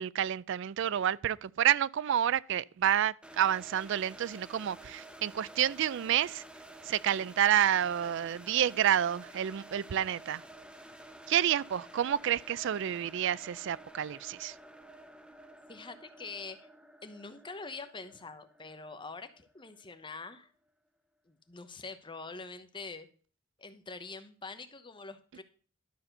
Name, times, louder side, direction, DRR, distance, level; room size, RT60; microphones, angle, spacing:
voice 1, 0.0-6.4 6.9-10.4 11.3-14.5, right 10 dB, 65° right, 0.4 m, -29 dB
sound 1, 3.2-20.1, right 1 dB, 5° right, 0.8 m, -51 dB
voice 2, 15.7-16.6 17.0-20.5 21.3-23.1 23.6-25.4, left 4 dB, 25° left, 0.9 m, -45 dB
12.0 x 4.2 x 6.6 m
head